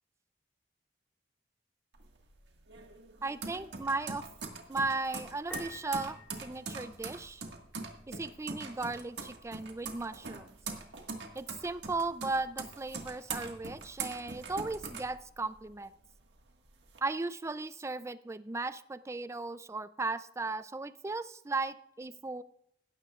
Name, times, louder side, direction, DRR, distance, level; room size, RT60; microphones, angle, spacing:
sound 1, 1.9-15.8 16.2-17.0, right 4 dB, 85° right, 1.7 m, -42 dB
voice 1, 3.2-4.2 4.7-7.4 8.1-10.5 11.3-15.9 17.0-22.4, right 3 dB, 15° right, 14 dB, 0.4 m, -36 dB
Piano, 5.5-7.3, left 2 dB, 10° left, 2.7 m, -48 dB
16.5 x 12.5 x 2.4 m, 0.73 s
head